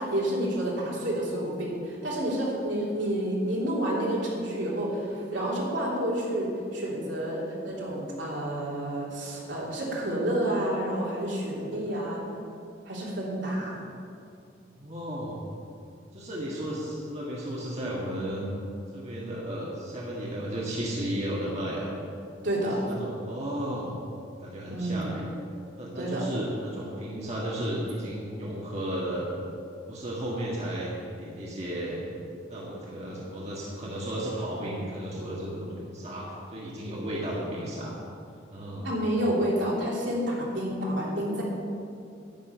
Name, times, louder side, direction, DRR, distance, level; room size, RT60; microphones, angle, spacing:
voice 1, 0.0-12.2 12.8-13.8 22.4-22.8 24.7-25.1 25.9-26.2 38.8-41.4, right 1 dB, 70° right, -5 dB, 3.1 m, -29 dB
voice 2, 14.8-15.4 16.1-18.5 18.9-21.9 22.6-23.9 24.4-25.2 25.8-29.3 29.9-32.0 32.5-38.0 38.5-38.9, right 1 dB, 35° right, -5 dB, 1.7 m, -34 dB
11.0 x 6.4 x 9.0 m, 2.5 s
head